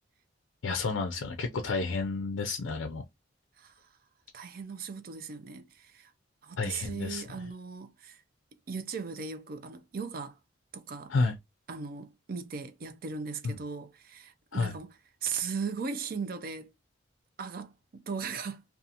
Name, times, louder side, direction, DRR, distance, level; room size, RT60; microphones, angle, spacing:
voice 1, 0.6-3.0 6.6-7.2 11.1-11.4 13.4-13.5 14.5-14.7, left 3 dB, 75° left, 0.4 m, -30 dB
voice 2, 3.6-3.9 4.3-6.1 6.4-8.2 8.7-10.4 10.7-11.2 11.7-16.7 17.4-18.6, right 5 dB, 50° right, 0.4 m, -38 dB
2.7 x 2.3 x 2.4 m
head